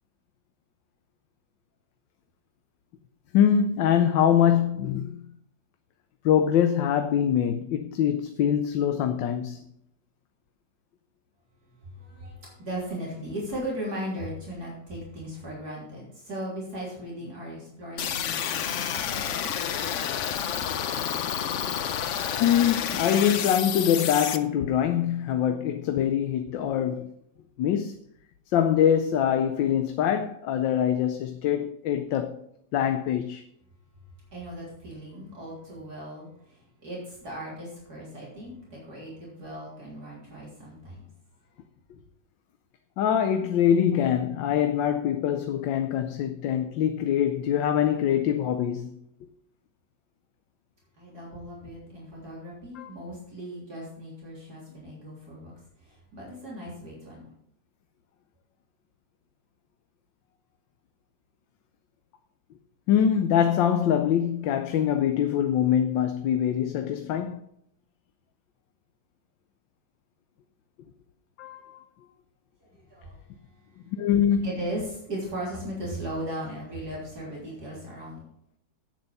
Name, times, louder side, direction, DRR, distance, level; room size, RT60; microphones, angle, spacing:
voice 1, 3.3-5.2 6.2-9.6 22.4-27.1 27.6-28.0 28.5-32.4 32.7-33.4 43.0-48.9 52.7-52.9 62.9-67.4 71.4-71.8 73.9-74.5, left 9 dB, 85° left, 1.4 m, -24 dB
voice 2, 11.8-19.4 34.3-41.1 51.0-55.5 55.8-57.3 72.7-73.1 74.4-78.3, right 1 dB, 55° right, 3.9 m, -37 dB
sound 1, 18.0-24.4, left 9 dB, 65° left, 0.7 m, -29 dB
8.9 x 8.2 x 5.4 m
omnidirectional pair, 2.0 m